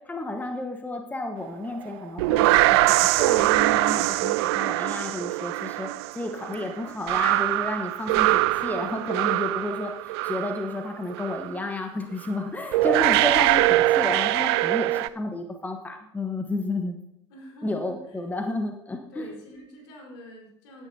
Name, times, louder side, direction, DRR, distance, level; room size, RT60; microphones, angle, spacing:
voice 1, 0.1-5.9 6.1-9.9 10.2-17.0 17.6-19.3, left 2 dB, 10° left, 5 dB, 1.2 m, -31 dB
sound 1, 1.9-10.8 11.1-11.5 12.3-12.4 12.7-15.1, right 17 dB, 55° right, 0.4 m, -23 dB
voice 2, 17.3-18.3 19.1-20.9, equal, 65° left, 0 dB, 4.5 m, -46 dB
17.0 x 10.0 x 2.8 m, 0.78 s
figure-of-eight pair, 75°, 16 cm